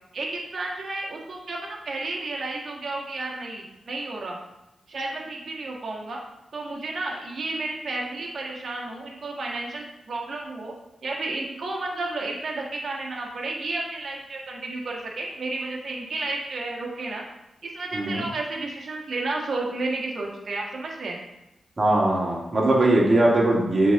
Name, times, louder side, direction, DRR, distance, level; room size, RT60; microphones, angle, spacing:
voice 1, 0.1-1.6 1.8-4.4 4.9-6.2 6.5-10.7 11.0-17.2 17.6-21.2, right 2 dB, 65° right, -1 dB, 1.6 m, -32 dB
voice 2, 17.9-18.2 21.8-23.9, right 1 dB, 45° right, -4 dB, 2.4 m, -20 dB
7.4 x 4.2 x 3.6 m, 0.89 s
supercardioid pair, 45°, 0 cm